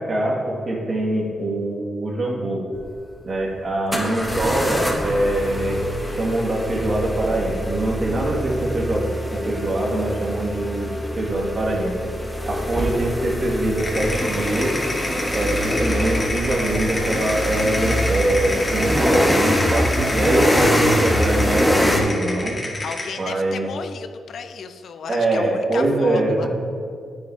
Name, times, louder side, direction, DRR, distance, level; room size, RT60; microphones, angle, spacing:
voice 1, 0.0-2.6 3.2-5.8 6.0-10.9 11.2-11.9 12.4-14.7 15.3-22.6 23.2-23.7 25.1-26.5, right 1 dB, 45° right, -2 dB, 2.0 m, -23 dB
sound 1, 2.7-2.8 3.9-22.0, equal, 10° left, 1.4 m, -24 dB
sound 2, 13.8-23.2, left 2 dB, 35° left, 1.9 m, -29 dB
voice 2, 22.8-26.5, left 6 dB, 70° left, 9 dB, 0.5 m, -34 dB
9.4 x 9.4 x 2.8 m, 2.2 s
cardioid pair, 65°, 0 cm